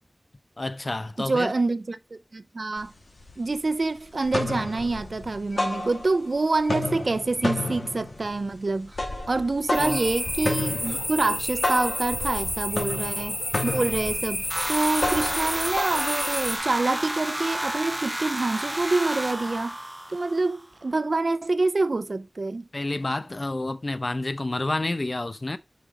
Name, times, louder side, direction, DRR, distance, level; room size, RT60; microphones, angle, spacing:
voice 1, 0.6-1.5 9.8-10.0 22.7-25.6, left 2 dB, 50° left, 0.7 m, -29 dB
voice 2, 1.2-2.9 3.4-9.0 9.3-13.4 13.6-19.8 20.1-22.7, right 3 dB, 75° right, 0.6 m, -26 dB
sound 1, 2.8-2.9 3.2-3.8 4.1-6.3 6.6-16.7, left 2 dB, 85° left, 2.2 m, -32 dB
sound 2, 9.7-16.6, left 1 dB, 30° left, 3.2 m, -31 dB
sound 3, 14.5-20.6, right 1 dB, 15° right, 0.5 m, -31 dB
5.2 x 5.2 x 4.8 m
wide cardioid pair, 60°, 0 cm